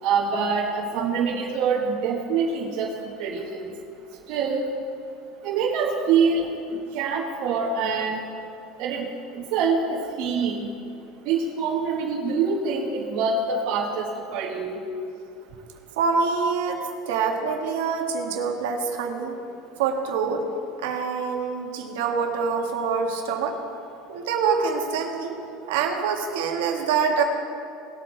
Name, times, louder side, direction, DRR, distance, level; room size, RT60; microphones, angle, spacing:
voice 1, 0.0-2.9 3.2-3.7 4.3-4.7 5.4-6.5 6.9-8.2 8.8-9.1 9.3-10.7 11.2-14.8, right 5 dB, 60° right, -4 dB, 1.6 m, -25 dB
voice 2, 16.0-19.3 19.8-20.5 20.8-23.6 24.1-25.4 25.7-27.2, right 5 dB, 85° right, 2 dB, 1.7 m, -25 dB
19.5 x 8.6 x 3.4 m, 2.5 s
supercardioid pair, 125°, 0 cm